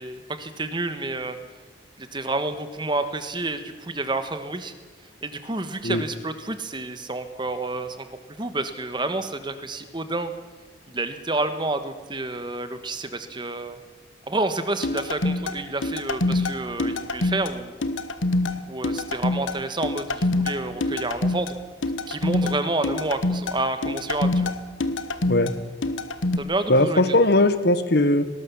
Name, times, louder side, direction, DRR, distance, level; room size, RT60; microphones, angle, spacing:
voice 1, 0.0-1.4 2.0-4.7 5.2-10.3 10.9-13.8 14.3-17.8 18.7-21.6 22.1-24.5 26.4-27.0, right 2 dB, 25° right, 10 dB, 1.4 m, -29 dB
sound 1, 14.8-26.4, left 2 dB, 90° left, 1.3 m, -26 dB
voice 2, 26.7-28.2, left 2 dB, 55° left, 12 dB, 1.3 m, -19 dB
19.5 x 18.5 x 7.1 m, 1.3 s
head